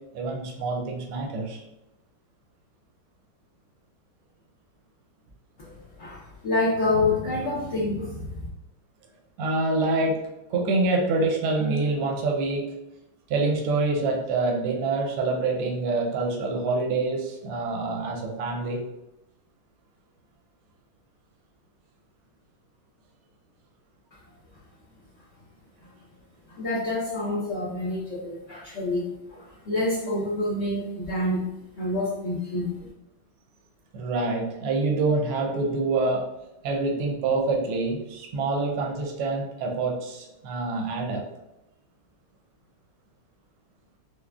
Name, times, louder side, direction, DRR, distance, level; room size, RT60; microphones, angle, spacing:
voice 1, 0.1-1.6 9.4-10.2 10.5-12.7 13.3-18.8 33.9-36.2 36.6-41.2, right 3 dB, 85° right, 1 dB, 1.5 m, -26 dB
voice 2, 5.6-8.5 26.5-31.4 31.8-32.9, left 2 dB, 70° left, -7 dB, 0.7 m, -28 dB
4.7 x 2.1 x 2.3 m, 0.91 s
omnidirectional pair, 2.3 m